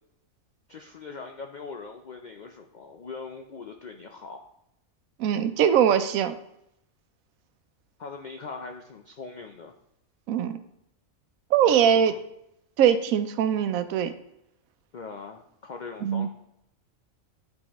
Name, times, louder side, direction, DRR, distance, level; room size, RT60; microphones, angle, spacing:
voice 1, 0.7-4.5 8.0-9.7 11.6-12.2 14.9-16.3, left 4 dB, 70° left, 4 dB, 0.4 m, -41 dB
voice 2, 5.2-6.3 10.3-10.6 11.5-12.1 12.8-14.1 16.0-16.3, right 9 dB, 85° right, 10 dB, 1.0 m, -22 dB
11.0 x 3.8 x 3.0 m, 0.81 s
omnidirectional pair, 1.4 m